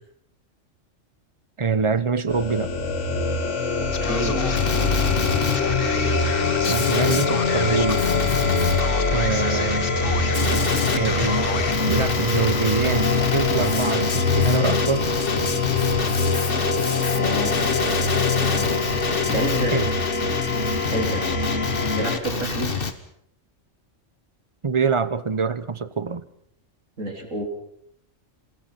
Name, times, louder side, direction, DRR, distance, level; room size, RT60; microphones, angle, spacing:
voice 1, 1.6-2.7 6.6-8.1 9.1-9.9 10.9-11.4 11.9-13.1 13.3-15.0 19.7-19.9 24.6-26.2, right 5 dB, 25° right, 0.8 m, -24 dB
sound 1, 2.3-22.2, left 3 dB, 65° left, 2.3 m, -24 dB
voice 2, 3.8-5.1 17.1-17.6 18.4-18.7 19.3-19.8 20.9-21.3 21.9-22.9 27.0-27.4, right 2 dB, 85° right, 4.4 m, -29 dB
Male speech man speaking, 3.9-22.9, left 5 dB, 45° left, 1.6 m, -27 dB
28.5 x 20.0 x 6.0 m
omnidirectional pair, 1.3 m